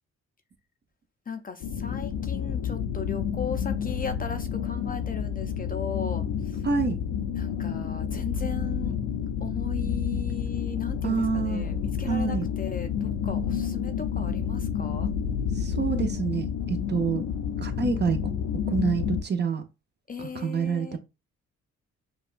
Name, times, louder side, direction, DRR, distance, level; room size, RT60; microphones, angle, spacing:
voice 1, 1.3-6.6 7.4-9.0 9.4-15.1 20.1-21.0, left 6 dB, 30° left, 0.5 m, -37 dB
sound 1, 1.6-19.2, left 8 dB, 85° left, 0.6 m, -30 dB
voice 2, 6.6-7.0 11.0-11.7 12.1-12.5 15.5-17.2 17.6-18.2 18.7-19.6 20.2-21.0, right 5 dB, 35° right, 0.8 m, -27 dB
5.2 x 2.3 x 2.5 m
cardioid pair, 90°, 30 cm